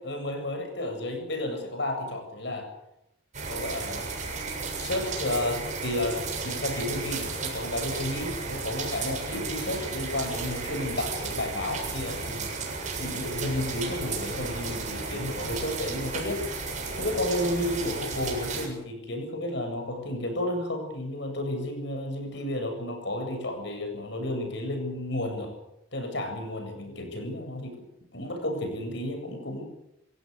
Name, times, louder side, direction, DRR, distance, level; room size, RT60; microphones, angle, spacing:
voice 1, 0.0-2.7 3.5-4.1 4.8-12.5 13.0-16.4 16.9-25.5 25.9-27.8 28.1-29.7, left 1 dB, 55° left, 5 dB, 7.8 m, -32 dB
sound 1, 3.3-18.7, right 4 dB, 35° right, 7.3 m, -34 dB
29.5 x 16.5 x 8.3 m, 0.85 s
head